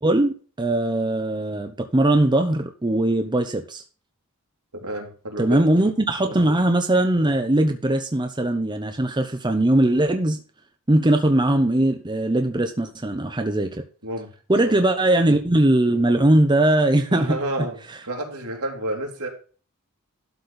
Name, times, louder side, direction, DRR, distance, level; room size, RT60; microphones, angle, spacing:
voice 1, 0.0-3.8 5.4-10.4 10.9-13.8 14.5-17.4, right 1 dB, 20° right, 5 dB, 0.8 m, -20 dB
voice 2, 4.8-5.6 6.2-6.4 14.0-14.3 14.6-14.7 17.1-17.8 18.0-19.3, right 1 dB, 70° right, 1 dB, 2.9 m, -30 dB
12.0 x 4.3 x 6.7 m, 0.38 s
head